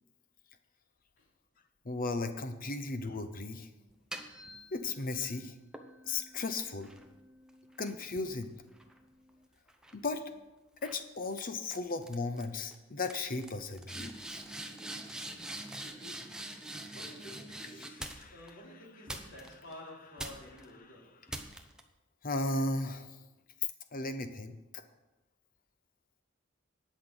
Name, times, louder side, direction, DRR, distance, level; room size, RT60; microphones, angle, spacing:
voice 1, 1.8-3.7 4.7-5.5 6.0-6.9 7.8-8.5 9.9-10.2 10.8-14.1 17.8-18.4 20.8-20.9 22.2-23.1 23.9-24.8, left 3 dB, 45° left, 9 dB, 0.8 m, -36 dB
sound 1, 3.9-5.1 5.7-9.3 9.7-10.1 10.8-11.0 11.3-11.8 12.0-12.4 12.7-12.8 13.0-18.5 19.1-19.7 20.2-20.7 21.3-21.8, right 1 dB, 5° right, 0.8 m, -45 dB
voice 2, 15.7-16.5 16.9-21.2, left 1 dB, 65° left, -3 dB, 3.1 m, -51 dB
18.5 x 6.4 x 4.0 m, 1.0 s
head